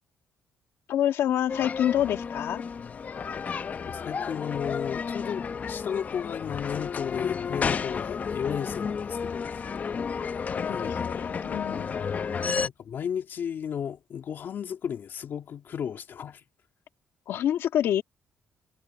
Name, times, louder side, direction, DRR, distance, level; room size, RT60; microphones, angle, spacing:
voice 1, 0.9-2.6 10.7-11.9 17.3-18.0, left 11 dB, 75° left, 1.8 m, -27 dB
sound 1, 1.5-12.7, left 6 dB, 40° left, 0.8 m, -32 dB
voice 2, 3.9-9.7 10.6-11.2 12.5-16.4, left 8 dB, 55° left, 2.9 m, -34 dB
cardioid pair, 110°, 4 cm